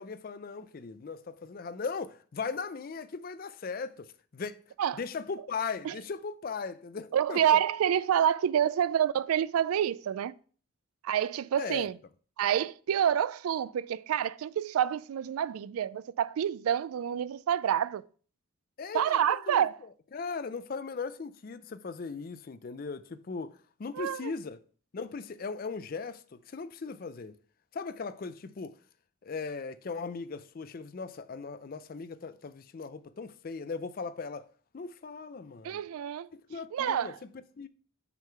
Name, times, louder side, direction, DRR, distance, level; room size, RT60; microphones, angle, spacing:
voice 1, 0.0-4.1 4.3-4.6 4.9-7.6 11.6-11.9 18.8-19.7 20.1-24.6 24.9-27.4 27.7-28.8 29.2-34.5 34.7-35.8 36.3-37.7, left 4 dB, 40° left, 0.4 m, -38 dB
voice 2, 7.1-10.3 11.0-12.0 12.4-18.0 18.9-19.7 23.9-24.3 35.6-36.3 36.7-37.2, right 9 dB, 90° right, 0.3 m, -28 dB
5.8 x 3.7 x 5.6 m
head